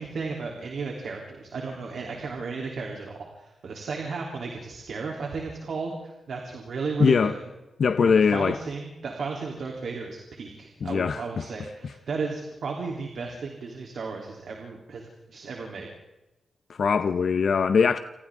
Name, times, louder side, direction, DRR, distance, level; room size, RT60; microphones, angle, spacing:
voice 1, 0.0-7.4 8.0-15.9, right 4 dB, 65° right, 3.4 m, -34 dB
voice 2, 7.0-7.3 7.8-8.5 10.8-11.2 16.8-18.0, left 6 dB, 60° left, 0.7 m, -21 dB
28.0 x 28.0 x 3.8 m
wide cardioid pair, 140°, 0 cm